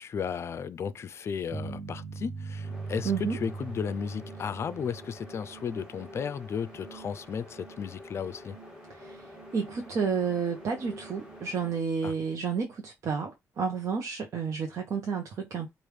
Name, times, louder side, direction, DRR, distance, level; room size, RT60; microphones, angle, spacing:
voice 1, 0.0-8.6 12.0-12.1, left 7 dB, 50° left, 0.4 m, -34 dB
sound 1, 1.5-5.7, right 4 dB, 30° right, 1.1 m, -40 dB
sound 2, 2.5-11.8, equal, 15° right, 2.0 m, -48 dB
voice 2, 3.0-3.4 9.0-15.7, right 6 dB, 65° right, 0.8 m, -31 dB
4.8 x 2.5 x 3.2 m
cardioid pair, 110°, 6 cm